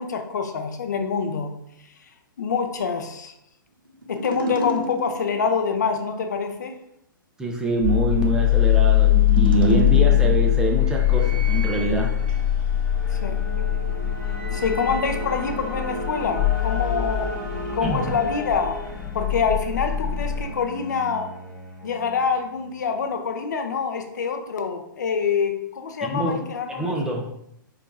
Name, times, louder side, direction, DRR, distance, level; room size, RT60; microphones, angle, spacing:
voice 1, 0.0-1.5 2.4-3.3 4.1-6.8 13.2-13.4 14.5-17.3 17.7-18.8 19.1-21.3 21.8-26.9, left 5 dB, 55° left, 5 dB, 0.5 m, -26 dB
sound 1, 4.0-5.5 9.0-10.8, right 3 dB, 85° right, 0.7 m, -27 dB
voice 2, 7.4-12.1 17.8-18.0 26.0-26.4 26.7-27.3, right 2 dB, 5° right, -2 dB, 0.4 m, -25 dB
sound 2, 7.8-20.4, left 13 dB, 35° left, 0.9 m, -22 dB
sound 3, 9.1-22.7, equal, 85° left, 1.1 m, -36 dB
4.6 x 2.4 x 2.2 m, 0.76 s
figure-of-eight pair, 115°, 11 cm